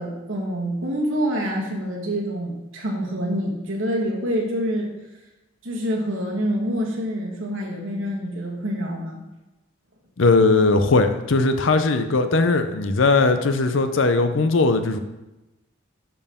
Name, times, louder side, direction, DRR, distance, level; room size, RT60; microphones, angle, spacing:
voice 1, 0.0-4.9 5.6-9.2, equal, 80° right, -2 dB, 1.6 m, -26 dB
voice 2, 10.2-15.0, left 3 dB, 75° left, 9 dB, 0.6 m, -19 dB
10.5 x 4.6 x 3.6 m, 1.0 s
head